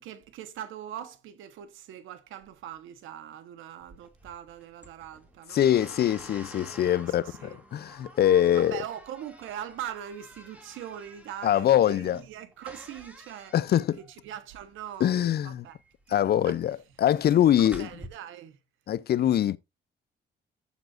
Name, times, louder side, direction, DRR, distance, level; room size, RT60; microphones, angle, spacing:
voice 1, 0.0-5.6 7.1-7.6 8.5-13.5 14.2-15.8 16.1-16.2 16.4-16.6 17.6-18.6, right 10 dB, 90° right, 1.1 m, -41 dB
sound 1, 3.8-18.1, equal, 5° right, 2.3 m, -49 dB
voice 2, 5.5-8.8 11.4-12.2 13.5-14.0 15.0-15.6 16.1-17.9 18.9-19.6, left 11 dB, 55° left, 0.5 m, -23 dB
14.0 x 7.1 x 2.5 m
cardioid pair, 90°, 20 cm